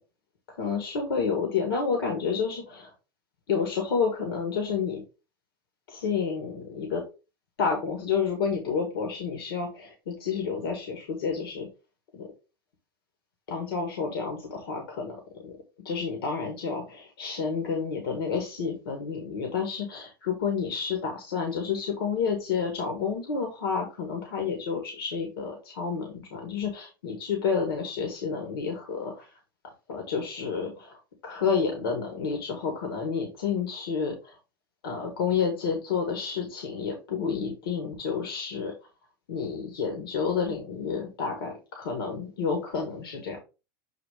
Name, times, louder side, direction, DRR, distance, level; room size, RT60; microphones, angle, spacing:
voice 1, 0.5-2.9 3.5-5.0 5.9-7.0 7.6-11.7 12.1-12.3 13.5-15.6 15.8-29.3 29.6-31.0 31.2-34.4 34.8-38.7 39.3-43.4, left 5 dB, 80° left, 3 dB, 1.9 m, -30 dB
7.6 x 2.7 x 4.9 m, 0.30 s
hypercardioid pair, 110°, 12 cm